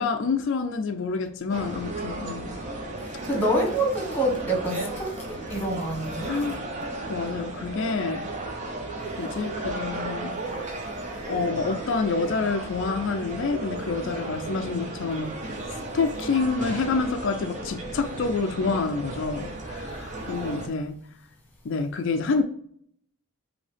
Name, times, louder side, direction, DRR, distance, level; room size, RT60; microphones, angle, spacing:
voice 1, 0.0-2.5 6.3-6.6 7.1-8.3 9.2-10.4 11.3-15.3 15.9-21.0 21.6-22.4, left 4 dB, 60° left, 0.4 m, -27 dB
sound 1, 1.5-20.7, right 2 dB, 35° right, 0.8 m, -34 dB
voice 2, 3.0-6.3, right 1 dB, 10° left, 1.3 m, -27 dB
5.3 x 2.8 x 3.3 m
head